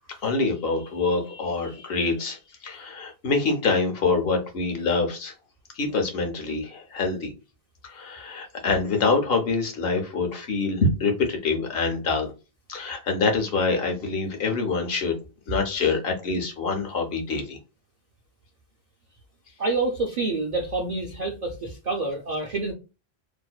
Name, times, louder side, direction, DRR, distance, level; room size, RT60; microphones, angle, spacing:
voice 1, 0.2-5.3 5.7-7.3 7.8-12.3 12.7-15.2 15.5-17.6, left 3 dB, 70° left, 3 dB, 0.9 m, -25 dB
voice 2, 19.6-22.7, right 3 dB, 55° right, -1 dB, 0.5 m, -27 dB
2.6 x 2.1 x 2.3 m, 0.30 s
omnidirectional pair, 1.1 m